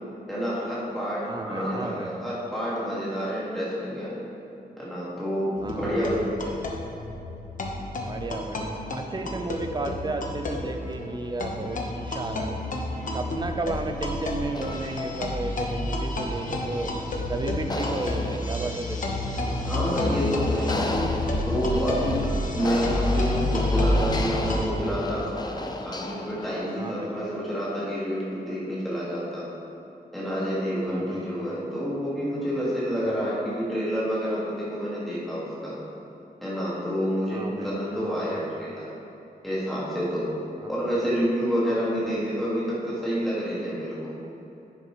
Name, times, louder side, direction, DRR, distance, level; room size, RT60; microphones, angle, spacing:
voice 1, 0.3-4.1 4.8-6.6 19.6-21.0 21.4-25.3 25.8-29.5 30.1-35.8 36.4-38.9 39.4-40.3 40.7-44.1, equal, ahead, -9 dB, 1.7 m, -28 dB
voice 2, 1.3-2.1 5.6-6.2 8.1-12.6 13.1-16.9 17.3-19.0 26.8-27.1 30.9-31.3 33.1-33.2 37.3-37.7 38.0-38.4 40.6-40.7, right 2 dB, 25° right, 5 dB, 0.5 m, -33 dB
sound 1, 5.6-24.7, left 1 dB, 55° left, 1.0 m, -29 dB
sound 2, 14.5-26.8, left 2 dB, 25° left, 0.5 m, -35 dB
10.5 x 6.7 x 3.0 m, 2.8 s
wide cardioid pair, 135°, 16 cm